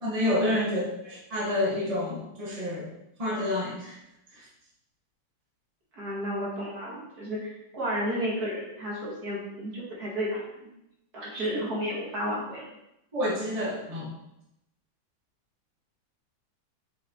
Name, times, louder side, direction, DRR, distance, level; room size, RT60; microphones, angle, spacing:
voice 1, 0.0-2.9 3.2-4.0 4.3-4.5 13.1-14.1, left 1 dB, 20° right, -6 dB, 1.6 m, -29 dB
voice 2, 6.0-10.7 11.1-12.6, equal, 50° right, -5 dB, 2.2 m, -32 dB
8.0 x 5.0 x 3.0 m, 0.85 s
omnidirectional pair, 2.2 m